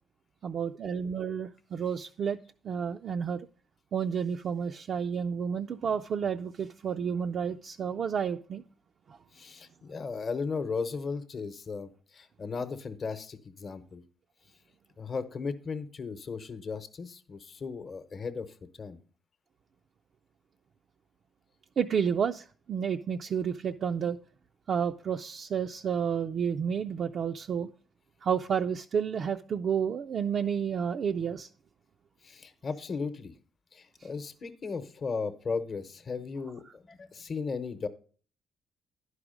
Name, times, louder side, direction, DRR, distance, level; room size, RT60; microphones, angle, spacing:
voice 1, 0.4-2.4 2.6-3.5 3.9-8.6 9.1-9.2 21.8-24.2 24.7-27.7 28.2-31.5 34.0-34.1, right 7 dB, 55° right, 0.3 m, -30 dB
voice 2, 9.3-14.0 15.0-19.0 32.2-33.3 33.7-37.9, left 4 dB, 45° left, 0.8 m, -36 dB
10.5 x 4.9 x 5.0 m
cardioid pair, 90°, 0 cm